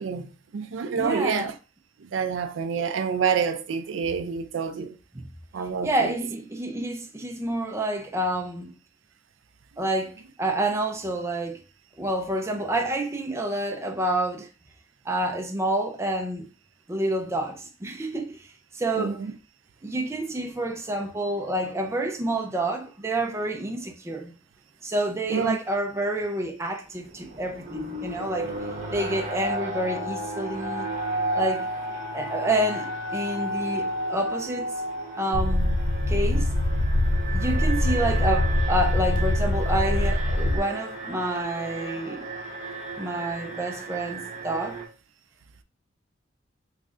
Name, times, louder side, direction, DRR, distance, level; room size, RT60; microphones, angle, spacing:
voice 1, 0.0-1.6 2.0-5.0 5.5-6.1 19.0-19.3 25.3-25.6, right 6 dB, 80° right, 0.4 m, -28 dB
voice 2, 0.9-1.5 5.1-5.3 5.8-8.7 9.8-10.1 10.4-11.6 12.0-14.5 15.1-16.5 16.9-18.5 18.7-19.2 19.8-24.3 24.8-28.5 28.9-30.9 31.3-31.6 32.1-34.7 35.2-35.7 36.1-36.5 37.3-42.3 43.0-44.8, right 1 dB, 15° right, 0.4 m, -28 dB
Alarm, 26.9-44.9, right 1 dB, 40° right, 0.8 m, -33 dB
sound 1, 35.3-40.6, left 1 dB, 45° left, 0.5 m, -23 dB
3.2 x 2.4 x 3.6 m
head